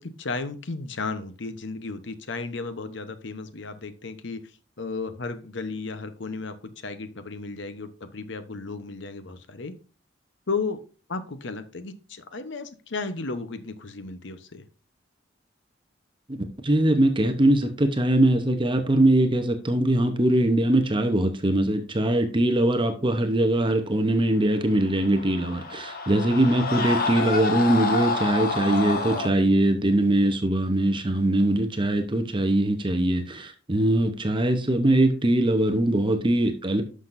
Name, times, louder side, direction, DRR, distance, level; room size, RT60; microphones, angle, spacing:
voice 1, 0.0-4.4 4.8-9.7 10.5-10.8 11.1-14.6 28.6-28.9, left 4 dB, 65° left, 0.9 m, -34 dB
voice 2, 16.6-36.8, right 1 dB, 25° right, 0.8 m, -22 dB
Screaming, 24.8-29.3, left 3 dB, 50° left, 1.4 m, -28 dB
11.5 x 6.2 x 2.6 m
head